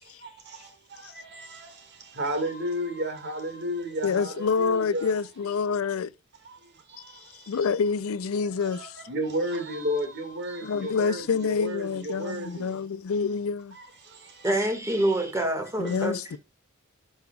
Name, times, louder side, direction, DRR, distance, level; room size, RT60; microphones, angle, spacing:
voice 1, 0.0-5.1 6.4-7.6 8.3-12.7 13.7-14.5 15.9-16.0, equal, 55° right, 2.0 m, -34 dB
voice 2, 4.0-6.1 7.5-9.0 10.6-13.8 15.8-16.4, left 5 dB, 90° left, 0.5 m, -27 dB
voice 3, 14.4-16.4, right 1 dB, 15° right, 1.7 m, -26 dB
11.5 x 5.4 x 2.3 m
head